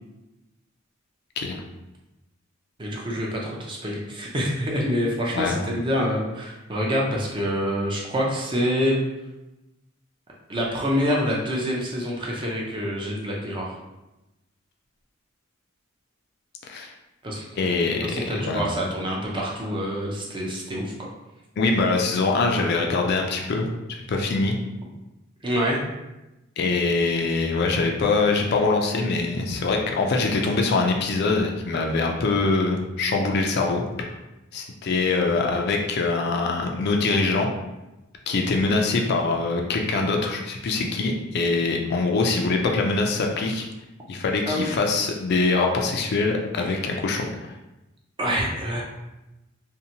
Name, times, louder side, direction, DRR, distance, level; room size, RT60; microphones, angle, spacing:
voice 1, 2.8-9.0 10.5-13.8 17.2-17.4 18.0-21.1 25.4-25.8 44.5-44.7 46.6-46.7 48.2-48.8, equal, 25° right, -2 dB, 0.5 m, -26 dB
voice 2, 17.6-18.6 21.6-24.6 26.6-34.1 34.5-37.5 38.3-43.7 44.1-47.5, left 3 dB, 55° left, 2 dB, 0.3 m, -23 dB
2.7 x 2.1 x 2.7 m, 0.98 s
head